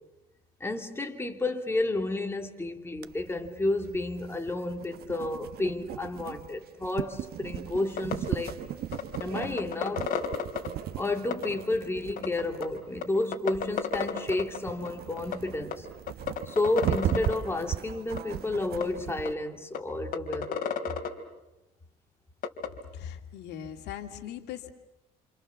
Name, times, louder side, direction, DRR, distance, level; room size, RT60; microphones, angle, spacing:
voice 1, 0.6-8.6 9.2-10.1 10.9-15.9 16.5-20.6, left 2 dB, 15° left, 3.0 m, -31 dB
sound 1, 3.0-19.3, right 12 dB, 65° right, 1.2 m, -37 dB
sound 2, 8.0-8.1 8.5-8.6 8.9-10.7 11.3-11.5 12.2-12.6 13.0-13.1 13.3-14.6 14.8-14.9 15.2-15.4 15.7-15.8 16.1-17.3 18.2-18.3 18.8-18.9 19.2-19.3 19.7-19.8 20.1-21.1 22.4-22.7, left 7 dB, 55° left, 3.4 m, -30 dB
voice 2, 22.9-24.7, left 9 dB, 80° left, 2.4 m, -40 dB
28.5 x 28.5 x 7.3 m
cardioid pair, 110°, 17 cm